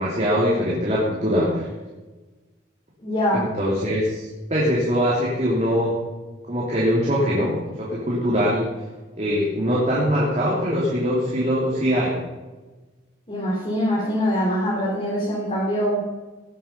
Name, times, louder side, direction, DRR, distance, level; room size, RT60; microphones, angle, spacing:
voice 1, 0.0-1.7 3.3-6.0 6.5-8.7 9.2-12.2, equal, 35° right, -7 dB, 3.2 m, -22 dB
voice 2, 3.0-3.5 13.3-16.0, equal, 30° left, -6 dB, 3.5 m, -23 dB
18.5 x 8.0 x 5.7 m, 1.2 s
head